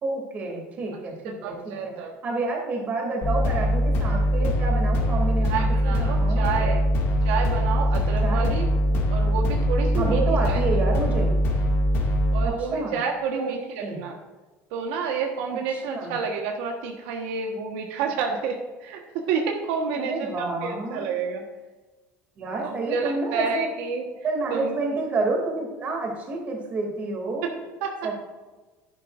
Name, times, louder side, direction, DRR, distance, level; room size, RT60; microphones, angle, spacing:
voice 1, 0.0-2.0 2.2-6.7 8.2-8.6 9.9-11.4 12.4-13.0 13.3-13.5 13.8-14.0 15.9-16.2 19.9-21.1 22.4-23.7 24.2-27.5 28.0-28.1, right 3 dB, 30° right, 0 dB, 2.7 m, -29 dB
voice 2, 1.2-2.1 5.4-6.8 7.2-8.7 9.1-10.6 12.3-14.1 14.7-21.4 22.6-24.0 24.5-24.7 27.8-28.1, right 5 dB, 80° right, 2 dB, 1.4 m, -29 dB
sound 1, 3.2-12.5, equal, 50° left, 2.2 m, -22 dB
11.0 x 11.0 x 2.6 m, 1.2 s
cardioid pair, 160°, 5 cm